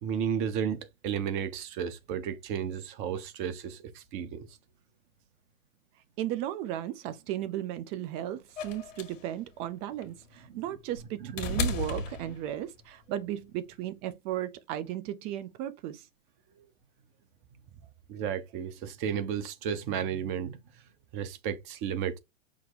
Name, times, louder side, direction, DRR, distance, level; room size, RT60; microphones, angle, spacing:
voice 1, 0.0-4.5 10.5-10.6 11.2-11.6 16.6-16.7 18.1-20.6 21.1-22.2, right 8 dB, 40° right, 1.0 m, -33 dB
voice 2, 6.2-16.1, right 12 dB, 15° right, 0.4 m, -35 dB
sound 1, 8.6-12.8 14.1-14.2, left 3 dB, 70° left, 1.4 m, -35 dB
6.0 x 2.1 x 4.0 m
hypercardioid pair, 115°, 40 cm